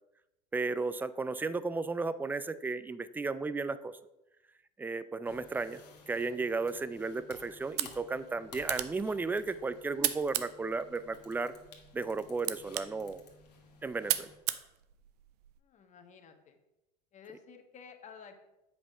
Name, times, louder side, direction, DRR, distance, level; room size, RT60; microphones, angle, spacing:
voice 1, 0.5-3.9 4.8-5.8 6.1-11.5 11.9-13.2 13.8-14.3, right 3 dB, 10° right, 14 dB, 0.4 m, -34 dB
sound 1, 5.3-14.4, left 5 dB, 75° left, 1.4 m, -56 dB
sound 2, 7.6-15.6, right 13 dB, 70° right, 0.6 m, -38 dB
voice 2, 15.6-16.6 17.1-18.4, left 6 dB, 35° left, 5 dB, 1.3 m, -52 dB
7.9 x 5.4 x 4.9 m, 0.93 s
hypercardioid pair, 80°, 21 cm